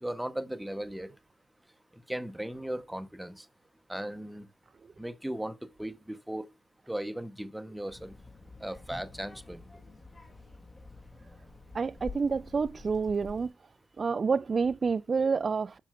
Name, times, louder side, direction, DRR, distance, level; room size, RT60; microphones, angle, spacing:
voice 1, 0.0-1.1 2.1-3.4 3.9-4.5 5.0-6.5 6.9-8.1 8.6-9.6, right 1 dB, 5° right, 0.8 m, -37 dB
Child speech kid speaking, 7.9-13.5, left 3 dB, 35° left, 2.1 m, -49 dB
voice 2, 11.7-13.5 14.0-15.8, right 5 dB, 45° right, 0.3 m, -28 dB
7.0 x 5.6 x 2.4 m
hypercardioid pair, 45°, 0 cm